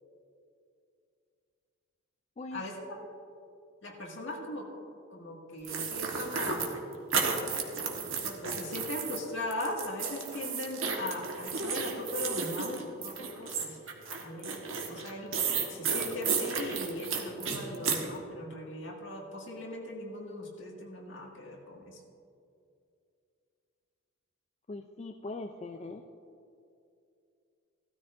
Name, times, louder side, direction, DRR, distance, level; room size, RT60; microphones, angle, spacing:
voice 1, 2.5-3.0 3.8-4.7 5.1-6.8 8.2-13.8 14.2-22.0, left 1 dB, 60° left, -2 dB, 1.9 m, -39 dB
sound 1, 5.6-9.2 9.5-18.1, right 5 dB, 70° right, 1.3 m, -33 dB
voice 2, 24.7-26.1, left 2 dB, 30° left, 4 dB, 0.3 m, -41 dB
16.0 x 13.0 x 2.6 m, 2.5 s
head